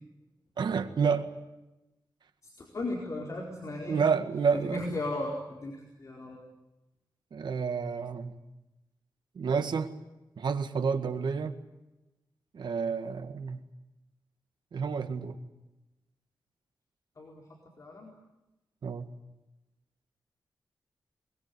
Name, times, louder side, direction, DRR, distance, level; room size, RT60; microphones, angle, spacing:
voice 1, 0.6-1.3 3.9-4.8 7.3-8.4 9.4-9.9 10.4-11.5 12.5-13.6 14.7-15.4 18.8-19.1, right 6 dB, 75° right, 8 dB, 1.8 m, -29 dB
voice 2, 2.4-4.0 4.5-6.4 17.2-17.4 17.8-18.1, left 2 dB, 45° left, -1 dB, 4.4 m, -36 dB
22.5 x 21.5 x 9.6 m, 0.98 s
wide cardioid pair, 120°, 8 cm